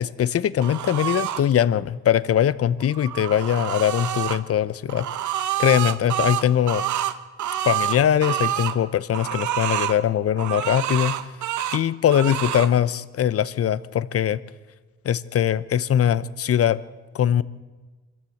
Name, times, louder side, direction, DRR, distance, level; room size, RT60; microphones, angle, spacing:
voice 1, 0.0-5.1 5.6-6.8 7.6-11.1 11.7-14.4 15.0-16.8 17.1-17.4, left 10 dB, 50° left, 18 dB, 0.8 m, -21 dB
sound 1, 0.6-1.4 2.8-4.4 4.9-8.8 9.1-10.0 10.4-11.8 12.1-12.7, right 11 dB, 75° right, 1.2 m, -27 dB
25.5 x 13.5 x 7.9 m, 1.3 s
cardioid pair, 90°, 30 cm